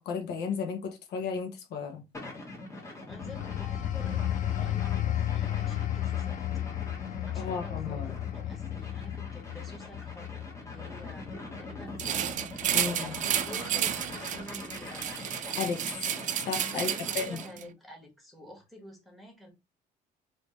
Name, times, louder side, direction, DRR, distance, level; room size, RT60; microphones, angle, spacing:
voice 1, 0.0-2.0 7.3-8.1 12.7-13.2 15.6-15.8 16.5-17.4, left 6 dB, 75° left, 0.9 m, -34 dB
sound 1, 2.1-17.6, left 2 dB, 15° left, 1.3 m, -43 dB
sound 2, 3.1-13.5 13.9-14.2, left 12 dB, 50° left, 0.5 m, -34 dB
voice 2, 3.1-6.4 7.3-8.0 8.3-15.7 16.7-19.5, equal, ahead, 1.5 m, -49 dB
sound 3, 12.0-17.6, right 10 dB, 50° right, 0.4 m, -32 dB
3.3 x 2.8 x 3.1 m
cardioid pair, 110°, 17 cm